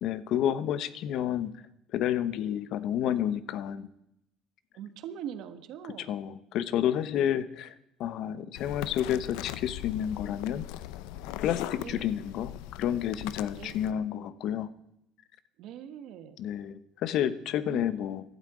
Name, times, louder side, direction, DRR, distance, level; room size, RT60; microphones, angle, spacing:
voice 1, 0.0-1.5 1.9-3.9 6.1-7.7 8.0-10.7 11.4-14.7 16.4-18.2, left 10 dB, 60° left, 15 dB, 0.9 m, -30 dB
voice 2, 4.7-6.1 11.8-12.1 13.5-13.8 15.6-16.4 17.7-18.0, right 9 dB, 65° right, 10 dB, 1.3 m, -42 dB
sound 1, 8.6-13.9, left 13 dB, 90° left, 0.6 m, -40 dB
16.0 x 12.0 x 4.9 m, 0.80 s
cardioid pair, 135°, 0 cm